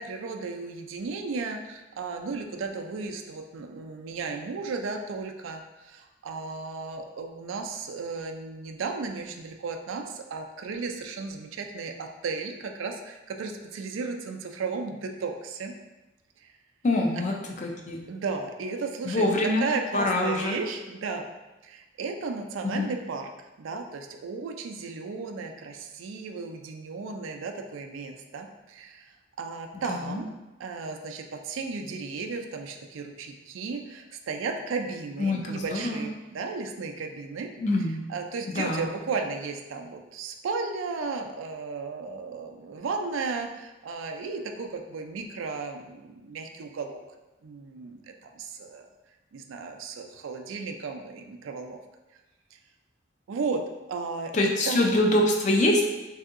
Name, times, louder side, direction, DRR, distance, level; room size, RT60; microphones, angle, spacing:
voice 1, 0.0-15.7 16.4-16.5 17.1-17.4 18.1-21.3 21.6-29.0 29.4-30.3 30.6-37.5 38.1-47.0 47.4-48.9 49.3-51.8 52.5-52.6 53.3-54.9, right 4 dB, 85° right, 4 dB, 0.4 m, -34 dB
voice 2, 16.8-18.0 19.0-19.7 19.9-20.6 22.6-22.9 29.7-30.2 35.2-36.0 37.6-38.0 38.5-38.8 54.3-55.9, left 1 dB, 40° left, 1 dB, 0.4 m, -25 dB
3.5 x 2.7 x 2.4 m, 1.1 s
head